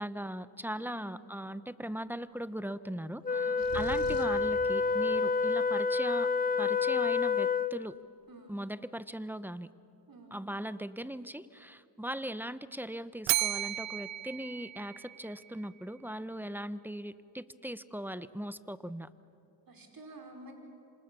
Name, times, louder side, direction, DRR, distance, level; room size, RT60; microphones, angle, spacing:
voice 1, 0.0-6.3 6.6-8.0 8.5-9.7 10.3-19.1, equal, 5° right, 14 dB, 0.9 m, -39 dB
voice 2, 0.8-1.2 3.3-3.7 8.3-8.6 10.1-10.4 19.7-20.5, right 2 dB, 45° right, 2 dB, 4.9 m, -51 dB
Wind instrument woodwind instrument, 3.2-7.9, left 4 dB, 20° left, 0.7 m, -28 dB
sound 1, 3.6-4.5, left 6 dB, 55° left, 2.8 m, -42 dB
Bell, 13.3-15.5, right 14 dB, 70° right, 0.7 m, -33 dB
27.0 x 27.0 x 6.9 m, 2.6 s
cardioid pair, 65°, 47 cm